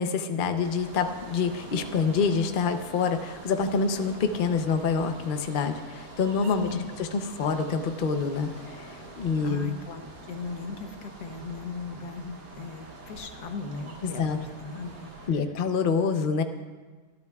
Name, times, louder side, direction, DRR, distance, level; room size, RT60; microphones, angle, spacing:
voice 1, 0.0-8.5 8.8-9.7 14.0-14.4 15.3-16.4, left 5 dB, 45° left, 7 dB, 0.7 m, -27 dB
sound 1, 0.6-15.3, right 2 dB, 65° right, 2.1 m, -45 dB
voice 2, 9.4-15.5, left 3 dB, 90° left, 6 dB, 1.6 m, -38 dB
26.0 x 10.5 x 2.4 m, 1.4 s
omnidirectional pair, 1.7 m